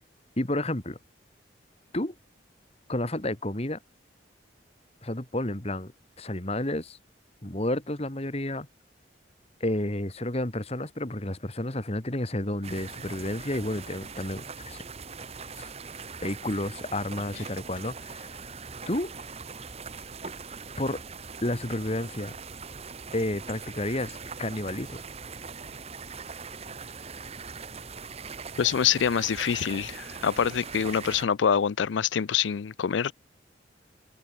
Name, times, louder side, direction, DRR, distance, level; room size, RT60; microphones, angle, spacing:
voice 1, 0.4-1.0 1.9-2.1 2.9-3.8 5.0-5.9 6.2-7.0 7.4-8.7 9.6-14.8 15.6-15.7 16.2-18.3 18.9-19.1 20.8-21.0 21.4-22.4 23.1-25.0, left 1 dB, 35° left, 2.3 m, -31 dB
sound 1, 12.6-31.2, right 5 dB, 35° right, 1.3 m, -41 dB
voice 2, 28.6-33.1, left 8 dB, 80° left, 0.4 m, -25 dB
head